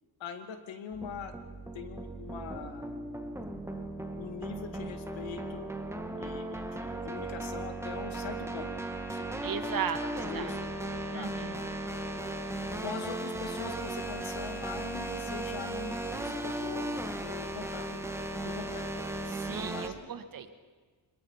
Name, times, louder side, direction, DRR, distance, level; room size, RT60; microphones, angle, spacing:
voice 1, 0.2-1.3 1.7-3.0 4.2-5.7 6.2-8.7 9.1-9.3 9.7-10.6 11.1-11.3 12.8-18.1 18.4-18.9 19.7-20.1, left 6 dB, 75° left, 7 dB, 2.3 m, -42 dB
sound 1, 0.9-19.9, right 1 dB, 5° right, 1.5 m, -37 dB
voice 2, 9.4-10.5 11.1-11.6 19.3-20.5, right 7 dB, 45° right, 9 dB, 1.6 m, -36 dB
25.5 x 22.0 x 5.8 m, 1.4 s
cardioid pair, 130°, 46 cm